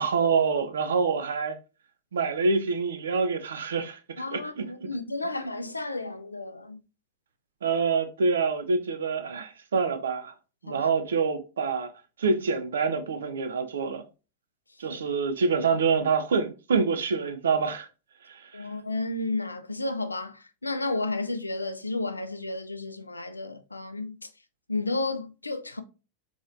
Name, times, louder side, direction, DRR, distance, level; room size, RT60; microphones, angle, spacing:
voice 1, 0.0-1.6 2.1-4.9 7.6-10.3 10.6-11.9 12.2-14.0 14.8-17.9 18.2-18.6, right 5 dB, 65° right, 0.5 m, -26 dB
voice 2, 4.2-6.8 10.7-10.9 14.9-15.0 18.5-24.2 24.7-25.8, left 2 dB, 80° left, 0.4 m, -32 dB
3.9 x 3.0 x 2.5 m
figure-of-eight pair, 90°, 0 cm